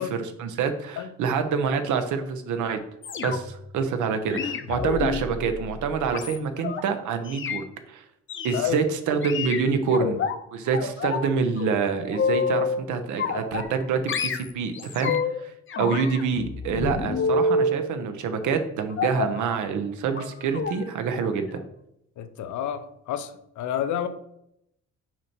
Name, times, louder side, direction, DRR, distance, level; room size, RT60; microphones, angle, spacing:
voice 1, 0.0-2.8 3.2-8.0 8.4-10.2 10.5-15.5 15.8-21.6, right 5 dB, 80° right, 0.9 m, -26 dB
sound 1, 3.0-3.7 4.3-6.8 7.3-7.6 8.3-8.6 9.2-10.4 10.7-11.3 11.6-12.8 13.2-13.8 14.1-15.4 15.7-17.8 19.0-19.4 20.1-20.3 20.5-20.8 21.1-21.3 21.6-21.7, left 4 dB, 40° left, 0.7 m, -28 dB
voice 2, 22.2-24.1, left 10 dB, 75° left, 0.7 m, -29 dB
6.1 x 4.6 x 4.3 m
cardioid pair, 90°, 30 cm